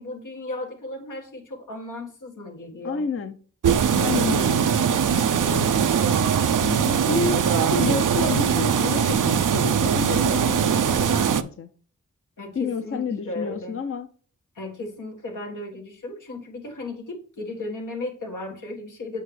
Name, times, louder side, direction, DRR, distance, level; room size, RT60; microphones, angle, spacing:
voice 1, 0.0-3.1 12.4-13.8 14.6-19.2, left 2 dB, 85° left, 1.8 m, -35 dB
voice 2, 2.8-3.4 3.9-4.7 5.4-5.8 6.2-11.7 12.5-14.1, left 5 dB, 45° left, 0.6 m, -30 dB
sound 1, 3.6-11.4, right 7 dB, 85° right, 0.6 m, -21 dB
7.9 x 5.1 x 3.3 m
cardioid pair, 55°, 30 cm